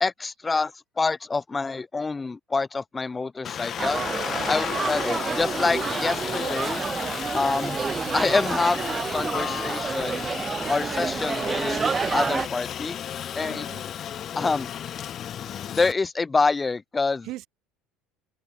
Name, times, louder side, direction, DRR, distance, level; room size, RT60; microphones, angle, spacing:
voice 1, 0.0-0.7 1.0-4.0 4.5-6.8 7.3-7.8 8.1-10.3 10.7-13.0 13.4-13.7 14.4-14.7 15.8-17.3, left 4 dB, 20° left, 0.3 m, -26 dB
Aircraft, 3.4-15.9, left 10 dB, 45° left, 2.3 m, -33 dB
sound 1, 3.8-12.5, right 5 dB, 25° right, 0.6 m, -29 dB
voice 2, 4.3-4.6 13.4-13.9 17.2-17.5, right 17 dB, 65° right, 4.3 m, -40 dB
supercardioid pair, 90°, 0 cm